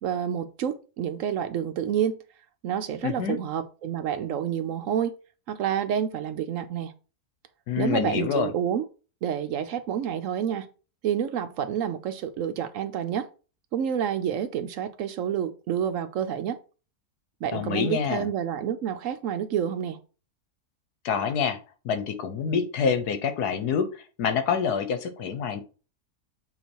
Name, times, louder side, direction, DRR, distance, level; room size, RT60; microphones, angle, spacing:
voice 1, 0.0-2.2 2.6-5.2 5.5-6.9 7.8-8.8 9.2-10.7 11.0-13.3 13.7-16.6 17.4-20.0, right 9 dB, 65° right, 0.9 m, -28 dB
voice 2, 3.0-3.4 7.7-8.5 17.5-18.3 21.0-21.6 21.8-25.6, left 6 dB, 80° left, 1.4 m, -26 dB
8.1 x 3.0 x 4.5 m
omnidirectional pair, 1.6 m